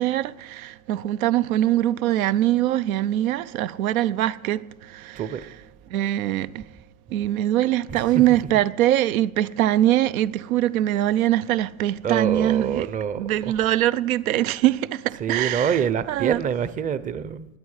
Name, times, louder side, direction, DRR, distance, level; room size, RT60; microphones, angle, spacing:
voice 1, 0.0-5.5 5.9-6.7 7.1-12.9 13.2-16.4, right 13 dB, 85° right, 0.7 m, -23 dB
voice 2, 7.9-8.2 12.0-13.5 15.2-17.5, right 8 dB, 20° right, 0.6 m, -26 dB
20.5 x 8.2 x 4.9 m
supercardioid pair, 125°, 41 cm